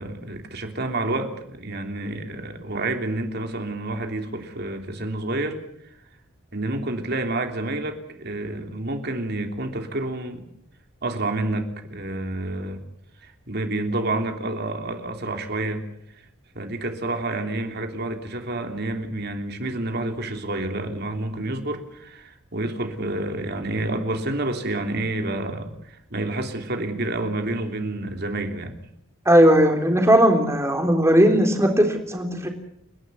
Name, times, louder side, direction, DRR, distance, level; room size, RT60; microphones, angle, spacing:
voice 1, 0.0-5.6 6.5-10.4 11.0-12.8 13.2-15.9 16.5-28.8, right 2 dB, 50° right, 5 dB, 3.2 m, -29 dB
voice 2, 29.3-32.5, equal, 15° right, 4 dB, 3.6 m, -17 dB
30.0 x 11.5 x 9.7 m, 0.76 s
head